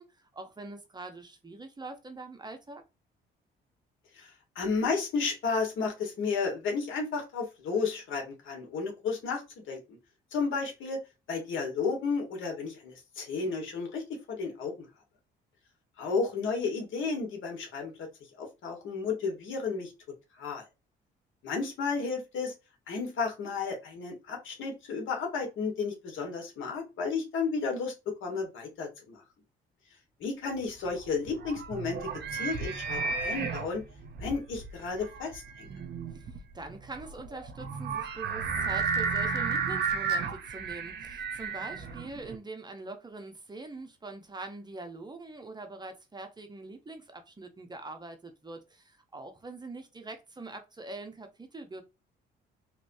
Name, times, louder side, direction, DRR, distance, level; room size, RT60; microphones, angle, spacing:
voice 1, 0.0-2.8 36.1-51.8, right 2 dB, 20° right, 0.8 m, -43 dB
voice 2, 4.1-9.8 10.3-11.0 11.3-14.0 14.3-14.7 16.0-18.1 18.4-19.9 20.4-20.6 21.4-22.5 22.9-27.9 28.2-29.2 30.2-32.0 32.3-33.8 34.2-35.7, left 4 dB, 80° left, 1.5 m, -32 dB
sound 1, 30.9-42.4, right 5 dB, 60° right, 0.7 m, -33 dB
3.1 x 3.0 x 2.6 m
cardioid pair, 90°, 20 cm